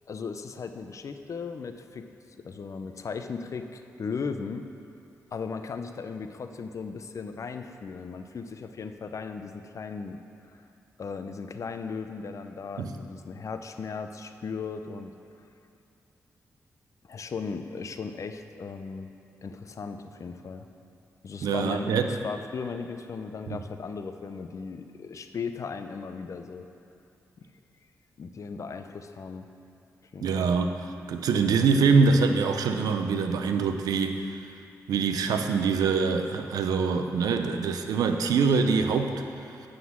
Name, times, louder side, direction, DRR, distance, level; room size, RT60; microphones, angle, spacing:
voice 1, 0.1-4.7 5.3-10.2 11.0-15.1 17.0-19.1 19.4-20.7 21.2-26.7 28.2-29.5 30.1-30.5, left 5 dB, 55° left, 8 dB, 0.5 m, -37 dB
voice 2, 21.4-22.1 23.5-23.6 30.2-30.8 31.1-34.4 34.9-39.1, right 5 dB, 85° right, 6 dB, 0.5 m, -24 dB
9.3 x 3.9 x 7.2 m, 2.7 s
cardioid pair, 60°, 6 cm